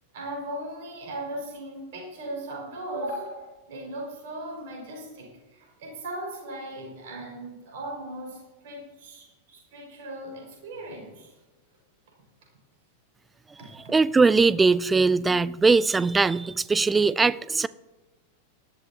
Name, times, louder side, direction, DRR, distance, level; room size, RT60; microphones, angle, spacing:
voice 1, 0.1-11.3 13.6-13.9, right 1 dB, 55° right, 5.6 m, -38 dB
voice 2, 13.6-17.7, right 4 dB, 10° right, 0.4 m, -21 dB
18.5 x 13.0 x 2.9 m
figure-of-eight pair, 90°, 0 cm